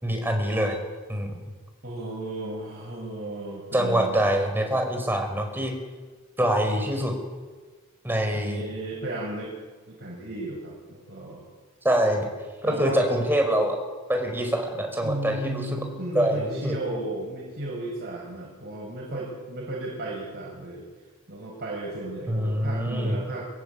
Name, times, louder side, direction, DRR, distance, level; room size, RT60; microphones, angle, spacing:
voice 1, 0.0-0.8 1.1-1.4 3.7-5.7 6.4-7.1 8.0-8.6 11.8-12.3 12.6-13.8 14.1-15.8 16.1-16.8 22.3-23.2, right 1 dB, 10° right, 3 dB, 5.3 m, -25 dB
voice 2, 1.8-4.2 8.3-9.5 9.9-11.4 12.6-13.1 15.0-20.9 21.3-23.5, right 1 dB, 50° right, -3 dB, 7.2 m, -34 dB
24.0 x 21.5 x 8.6 m, 1.3 s
head